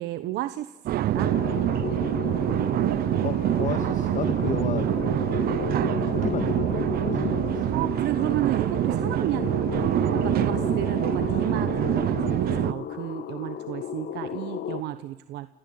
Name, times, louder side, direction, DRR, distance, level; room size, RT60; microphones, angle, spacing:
voice 1, 0.0-1.4 7.7-15.5, right 14 dB, 85° right, 12 dB, 1.1 m, -32 dB
sound 1, 0.9-12.7, right 13 dB, 65° right, 0.9 m, -25 dB
sound 2, 1.2-14.8, left 9 dB, 65° left, 1.9 m, -34 dB
voice 2, 3.2-4.9 5.3-5.8 6.1-7.7, left 7 dB, 50° left, 8 dB, 2.2 m, -33 dB
29.5 x 18.0 x 9.6 m, 1.2 s
cardioid pair, 110°, 17 cm